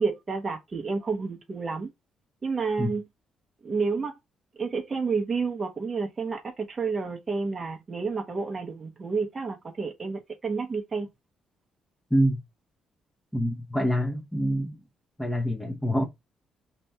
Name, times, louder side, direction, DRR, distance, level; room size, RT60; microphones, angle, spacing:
voice 1, 0.0-1.9 2.4-3.0 3.6-4.1 4.6-11.1, right 4 dB, 30° right, 0.8 m, -30 dB
voice 2, 13.3-14.8 15.2-16.0, equal, 5° left, 0.8 m, -26 dB
5.1 x 2.8 x 3.3 m
cardioid pair, 90°, 0 cm